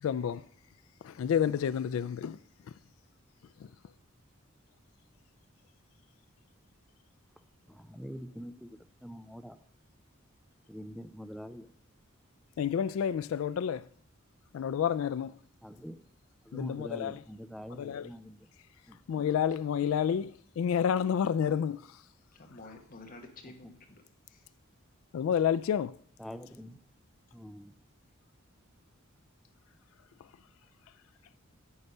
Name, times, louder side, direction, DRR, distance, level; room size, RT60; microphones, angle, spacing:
voice 1, 0.0-0.4 1.0-2.4 12.6-13.8 14.5-15.3 16.5-17.2 17.8-18.1 19.1-20.3 20.6-21.8 25.1-26.0, left 8 dB, 75° left, 0.3 m, -29 dB
voice 2, 7.7-9.6 10.7-11.7 15.6-16.1 16.4-18.5 18.9-19.0 26.2-26.8 27.3-27.7, equal, ahead, 0.4 m, -45 dB
voice 3, 22.3-24.5, left 2 dB, 45° left, 1.4 m, -51 dB
9.5 x 6.6 x 5.4 m
head